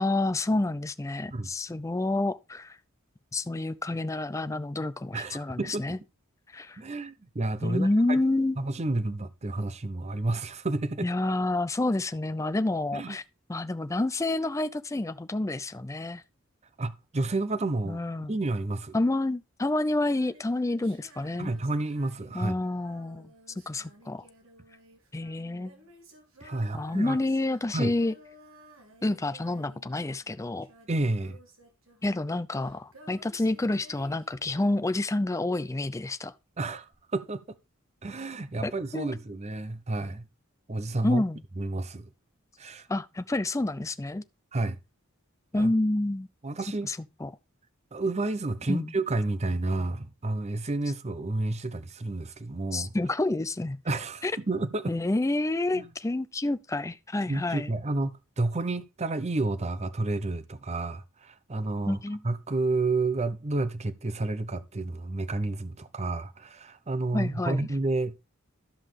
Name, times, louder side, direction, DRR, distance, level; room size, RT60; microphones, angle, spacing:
voice 1, 0.0-2.8 3.3-6.0 6.5-6.8 7.6-8.6 11.0-13.2 13.5-16.2 17.9-18.3 18.9-21.5 22.3-23.3 23.7-24.2 25.1-25.7 26.7-28.1 29.0-30.7 32.0-36.3 38.6-39.1 41.0-41.4 42.9-44.2 45.5-46.3 46.8-47.3 48.7-48.9 52.7-53.8 54.2-54.3 54.9-57.7 61.9-62.2 67.1-67.7, left 2 dB, 15° left, 0.4 m, -28 dB
voice 2, 5.1-6.0 6.8-8.2 8.6-11.1 12.9-13.2 16.8-18.0 18.3-19.0 21.4-22.6 26.4-27.2 27.7-27.9 30.9-31.4 36.6-37.6 38.0-40.3 40.7-41.2 41.6-42.1 42.6-42.9 44.5-44.8 45.6-45.7 46.4-46.9 47.9-52.9 53.8-54.9 55.7-55.9 57.3-68.2, right 2 dB, 30° right, 0.7 m, -30 dB
Female singing, 20.0-35.4 36.9-37.0, right 1 dB, 70° right, 2.6 m, -55 dB
12.5 x 5.6 x 3.2 m
head